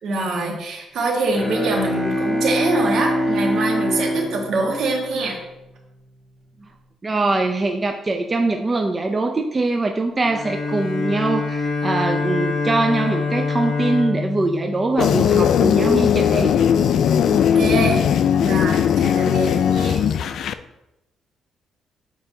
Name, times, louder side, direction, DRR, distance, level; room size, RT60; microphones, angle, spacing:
voice 1, 0.0-5.4 17.3-18.0 18.4-20.0, right 2 dB, 70° right, -1 dB, 1.6 m, -24 dB
Bowed string instrument, 1.3-5.6, equal, 10° left, 1.3 m, -24 dB
voice 2, 7.0-16.5, right 2 dB, 25° right, 4 dB, 0.4 m, -22 dB
Bowed string instrument 2, 10.2-15.7, left 4 dB, 50° left, 0.8 m, -25 dB
sound 1, 15.0-20.5, left 8 dB, 70° left, 0.3 m, -18 dB
7.9 x 4.6 x 2.7 m, 0.91 s
cardioid pair, 90°, 0 cm